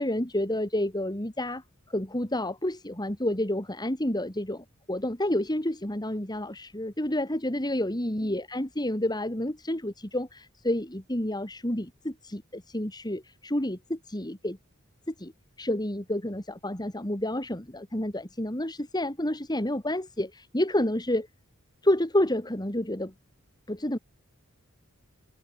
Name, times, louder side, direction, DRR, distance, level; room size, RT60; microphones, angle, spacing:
voice 1, 0.0-14.6 15.1-15.3 15.6-21.3 21.8-23.1 23.7-24.0, left 1 dB, 20° left, 3.2 m, -29 dB
open air
head